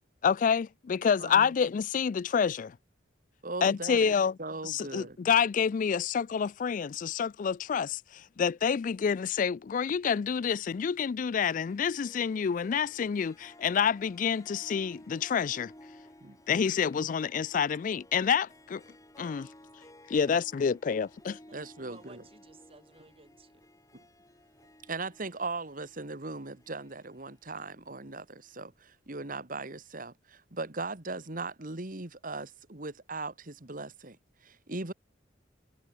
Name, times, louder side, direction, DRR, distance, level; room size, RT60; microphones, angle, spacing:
voice 1, 0.2-2.7 3.6-4.4 4.6-15.7 16.5-18.8 19.2-19.5 20.1-21.4, left 7 dB, 45° left, 0.3 m, -28 dB
voice 2, 1.2-1.5 3.4-4.1 4.4-5.2 16.2-16.4 20.3-20.4 20.7-20.8 21.5-22.2 24.9-34.2 34.4-34.9, right 3 dB, 45° right, 2.0 m, -39 dB
Harp, 11.7-28.5, left 1 dB, 20° left, 5.3 m, -56 dB
voice 3, 21.5-23.7, right 3 dB, 30° right, 3.6 m, -57 dB
head